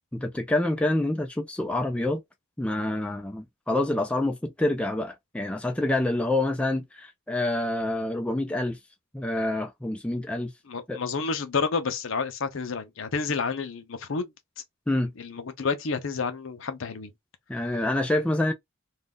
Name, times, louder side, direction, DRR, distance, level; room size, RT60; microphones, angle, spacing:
voice 1, 0.1-2.2 2.6-8.8 9.1-10.5 10.9-11.0 14.9-15.1 17.5-18.5, left 1 dB, 5° left, 0.3 m, -27 dB
voice 2, 10.7-14.3 15.2-17.1, left 4 dB, 65° left, 0.6 m, -30 dB
2.5 x 2.3 x 3.6 m
head